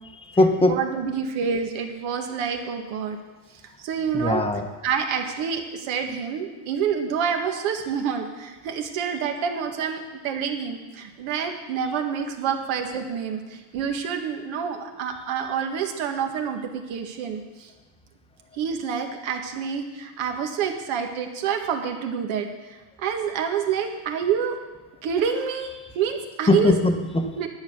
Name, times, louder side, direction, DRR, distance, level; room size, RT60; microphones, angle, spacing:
voice 1, 0.0-0.8 4.1-4.7 26.5-27.3, left 2 dB, 10° left, 6 dB, 1.0 m, -20 dB
voice 2, 0.7-3.2 3.8-4.4 4.8-17.7 18.5-24.6 25.0-26.7 27.4-27.5, right 7 dB, 70° right, 4 dB, 1.9 m, -28 dB
11.0 x 9.5 x 6.8 m, 1.2 s
cardioid pair, 140°, 49 cm